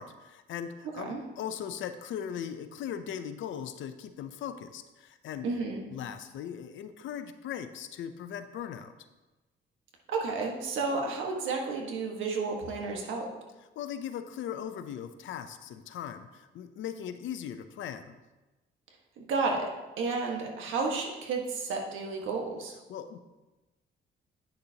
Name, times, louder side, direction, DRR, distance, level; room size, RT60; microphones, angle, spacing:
voice 1, 0.0-5.5 5.9-8.9 13.8-18.2 22.9-23.2, left 9 dB, 75° left, 10 dB, 0.6 m, -39 dB
voice 2, 5.4-5.8 10.1-13.3 19.2-19.7 20.0-22.7, right 4 dB, 80° right, 1 dB, 1.5 m, -32 dB
9.4 x 6.7 x 2.9 m, 1.1 s
cardioid pair, 90°, 20 cm